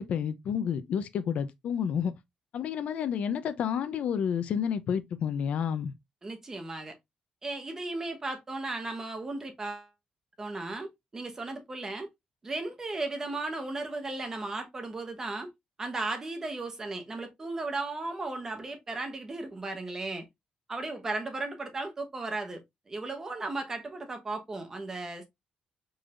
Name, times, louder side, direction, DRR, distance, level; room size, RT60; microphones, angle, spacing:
voice 1, 0.0-2.1 2.5-5.9, left 7 dB, 65° left, 0.6 m, -30 dB
voice 2, 6.2-6.9 7.4-9.9 10.4-12.1 12.4-15.5 15.8-20.3 20.7-22.6 22.9-25.3, right 2 dB, 20° right, 1.1 m, -35 dB
4.8 x 3.9 x 2.5 m
cardioid pair, 155°, 2 cm